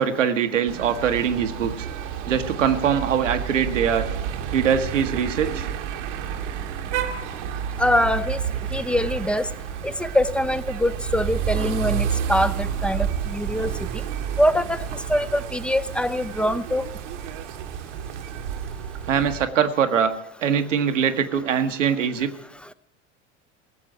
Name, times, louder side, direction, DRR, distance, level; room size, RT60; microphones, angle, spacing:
voice 1, 0.0-1.9 2.2-4.1 4.5-5.7 19.1-20.2 20.4-22.3, right 7 dB, 90° right, 7 dB, 1.3 m, -22 dB
sound 1, 0.7-19.5, right 8 dB, 75° right, 1.3 m, -30 dB
voice 2, 7.8-8.4 8.7-9.5 9.8-13.7 14.4-14.8 15.1-16.8, left 1 dB, 5° left, 13 dB, 0.6 m, -23 dB
17.5 x 7.5 x 9.0 m, 0.85 s
hypercardioid pair, 80°, 36 cm